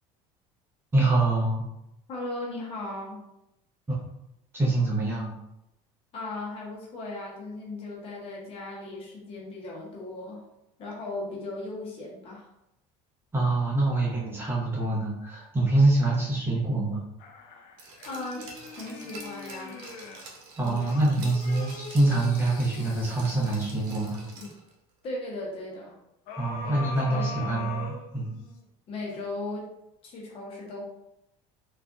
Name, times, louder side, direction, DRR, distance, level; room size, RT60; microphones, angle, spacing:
voice 1, 0.9-1.6 3.9-4.0 4.5-5.3 13.3-17.0 20.6-24.2 26.4-28.3, right 2 dB, 15° right, -5 dB, 0.9 m, -25 dB
voice 2, 2.1-3.2 6.1-10.4 10.8-12.5 18.0-18.5 18.8-19.8 20.6-20.9 25.0-26.0 26.6-26.8 27.1-27.8 28.9-29.7 30.0-30.8, left 2 dB, 40° left, -3 dB, 0.9 m, -37 dB
sound 1, 17.2-20.4 20.9-24.5 26.3-28.6 29.1-29.2, left 4 dB, 70° left, 0.5 m, -41 dB
Glass, 17.8-24.7 25.0-25.1, right 3 dB, 70° right, 0.8 m, -47 dB
3.4 x 2.5 x 2.4 m, 0.85 s
cardioid pair, 140°, 14 cm